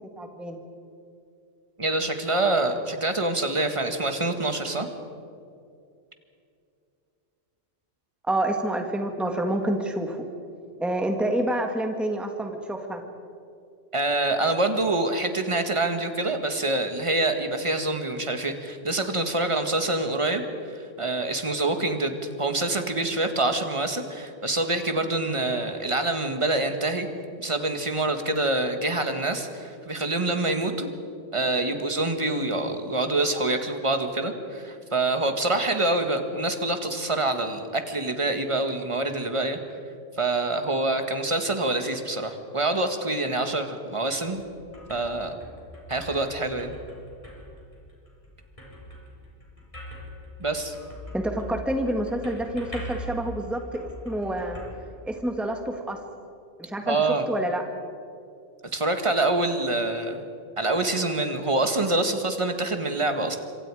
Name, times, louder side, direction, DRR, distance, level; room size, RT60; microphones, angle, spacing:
voice 1, 0.2-0.6 8.2-10.3 10.8-13.0 51.1-54.6 55.0-56.0 56.6-57.0 57.3-57.6, right 1 dB, ahead, 3 dB, 1.8 m, -28 dB
voice 2, 1.8-4.9 13.9-27.1 27.4-30.9 31.3-39.6 40.2-44.4 44.9-45.4 45.9-46.7 50.4-50.7 56.9-57.3 58.7-60.2 60.6-63.4, right 2 dB, 25° right, 6 dB, 1.8 m, -26 dB
sound 1, 44.2-55.6, equal, 25° left, 5.3 m, -42 dB
26.5 x 25.5 x 4.9 m, 2.5 s
omnidirectional pair, 1.2 m